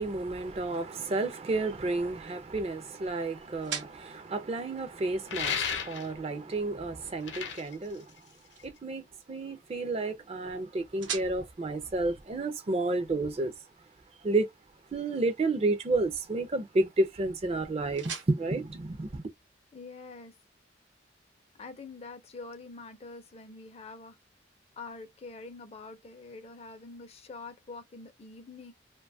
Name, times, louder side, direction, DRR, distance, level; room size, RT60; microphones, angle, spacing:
voice 1, 0.0-8.1 8.6-9.0 9.3-13.5 14.2-14.5 14.9-19.2, right 2 dB, 30° right, 0.4 m, -31 dB
sound 1, 1.0-19.8, right 7 dB, 75° right, 0.7 m, -48 dB
sound 2, 5.3-6.3 7.1-8.8, left 7 dB, 70° left, 0.7 m, -34 dB
voice 2, 19.7-20.3 21.5-24.2 24.8-28.7, left 3 dB, 30° left, 0.4 m, -45 dB
2.5 x 2.2 x 2.5 m
head